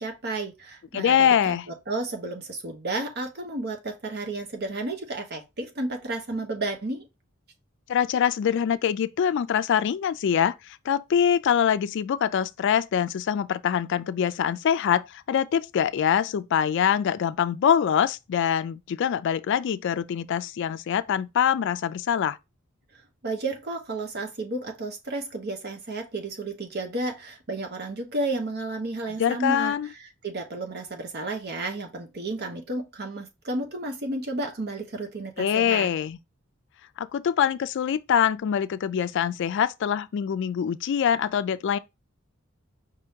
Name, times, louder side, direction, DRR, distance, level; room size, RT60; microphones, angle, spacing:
voice 1, 0.0-1.6 1.9-7.1 23.2-29.7 30.2-35.9, right 2 dB, 55° right, 1.1 m, -32 dB
voice 2, 0.9-1.6 7.9-22.4 29.2-29.9 35.4-36.2 37.0-41.8, left 8 dB, 60° left, 0.3 m, -24 dB
5.2 x 2.8 x 3.5 m
head